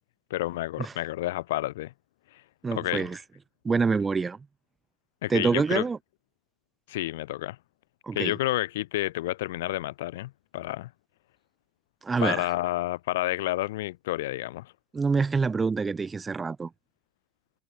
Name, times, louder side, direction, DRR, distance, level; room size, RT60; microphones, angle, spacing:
voice 1, 0.3-1.9 2.3-2.4 2.7-3.1 5.2-5.8 6.9-7.6 8.1-10.9 12.2-14.7, left 16 dB, 85° left, 2.3 m, -30 dB
voice 2, 2.6-3.2 3.6-4.4 5.3-6.0 8.0-8.3 12.0-12.5 14.9-16.7, right 4 dB, 15° right, 0.8 m, -26 dB
supercardioid pair, 130°, 0 cm